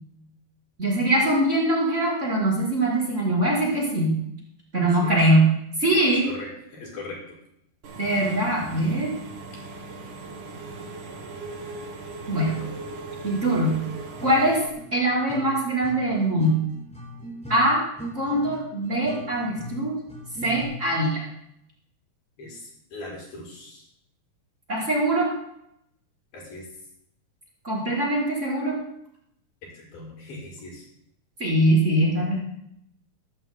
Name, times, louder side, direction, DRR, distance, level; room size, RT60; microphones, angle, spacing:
voice 1, 0.8-4.2 4.7-5.5 5.8-6.3 8.0-9.1 12.3-12.5 13.2-13.8 14.2-14.6 14.9-16.6 17.5-17.8 18.1-20.0 20.4-21.2 24.7-25.3 27.6-28.8 31.4-32.4, right 1 dB, 20° right, -3 dB, 4.8 m, -22 dB
voice 2, 4.8-5.2 6.2-7.4 12.5-12.7 22.4-23.9 26.3-26.7 29.6-30.8, left 2 dB, 85° left, -4 dB, 7.7 m, -40 dB
Engine / Mechanisms, 7.8-14.7, right 3 dB, 90° right, 4.3 m, -39 dB
sound 1, 14.2-20.6, right 1 dB, ahead, 5.6 m, -38 dB
23.0 x 13.5 x 2.2 m, 0.75 s
omnidirectional pair, 4.1 m